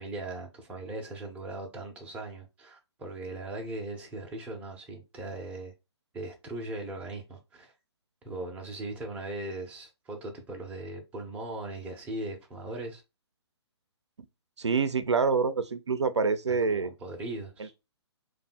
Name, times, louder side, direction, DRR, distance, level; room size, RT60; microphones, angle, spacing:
voice 1, 0.0-5.7 6.1-7.7 8.2-13.0 16.5-17.7, right 2 dB, 10° right, 0.6 m, -39 dB
voice 2, 14.6-16.9, right 5 dB, 80° right, 0.4 m, -26 dB
2.6 x 2.3 x 4.0 m
figure-of-eight pair, 130°, 14 cm